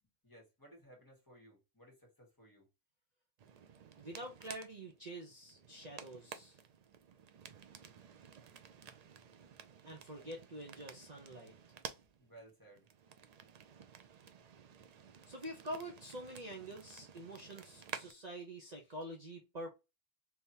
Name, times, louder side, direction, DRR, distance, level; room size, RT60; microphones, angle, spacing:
voice 1, 0.2-2.7 10.2-10.3 12.2-12.9, right 1 dB, 15° left, 1.6 m, -59 dB
sound 1, 3.4-18.1, right 7 dB, 85° right, 0.3 m, -53 dB
voice 2, 3.9-6.6 9.8-11.6 15.3-19.7, right 1 dB, 40° right, 0.8 m, -46 dB
3.5 x 2.9 x 2.8 m
omnidirectional pair, 1.3 m